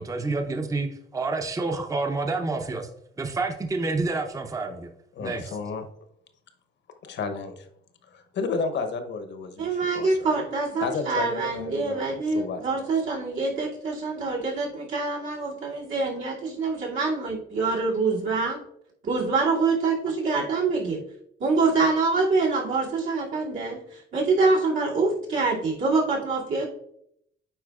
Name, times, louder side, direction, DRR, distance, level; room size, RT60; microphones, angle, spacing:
voice 1, 0.0-2.8 3.2-4.9 5.2-5.6, right 3 dB, 15° right, 5 dB, 0.6 m, -28 dB
voice 2, 5.1-5.8 7.0-7.7 8.1-10.2 10.8-12.6, left 4 dB, 65° left, 8 dB, 0.9 m, -32 dB
voice 3, 9.6-18.6 19.0-21.0 21.4-26.7, right 3 dB, 75° right, -5 dB, 2.6 m, -25 dB
8.9 x 4.4 x 2.4 m, 0.72 s
cardioid pair, 90°, 20 cm